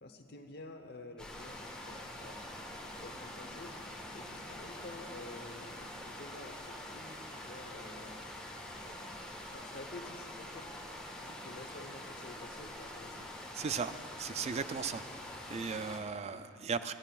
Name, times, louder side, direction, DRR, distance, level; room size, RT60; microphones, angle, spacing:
voice 1, 0.0-2.4 2.9-3.8 4.1-8.2 8.8-9.1 9.5-10.7 11.2-13.3, left 2 dB, 55° left, 5 dB, 1.0 m, -50 dB
sound 1, 1.2-16.0, left 1 dB, 5° left, 1.5 m, -45 dB
voice 2, 13.5-15.0 15.5-16.9, right 5 dB, 30° right, 11 dB, 0.4 m, -36 dB
17.5 x 15.0 x 2.4 m, 2.4 s
head